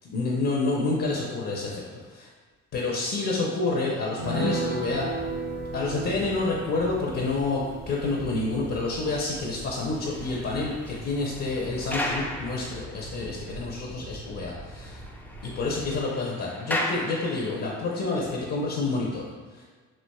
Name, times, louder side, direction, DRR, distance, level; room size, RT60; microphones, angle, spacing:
voice 1, 0.0-1.8 2.1-2.3 2.7-5.1 5.7-15.0 15.4-19.7, left 3 dB, 55° left, -3 dB, 0.6 m, -28 dB
sound 1, 4.2-11.0 11.3-11.4 11.7-11.9, right 2 dB, 50° right, 0.7 m, -35 dB
sound 2, 4.9-16.0, right 1 dB, 70° right, 1.4 m, -43 dB
sound 3, 9.8-13.5 13.8-13.9 14.2-14.3 14.6-17.9 18.6-18.8, left 1 dB, 5° left, 0.3 m, -36 dB
4.4 x 2.4 x 2.2 m, 1.4 s
cardioid pair, 90°, 30 cm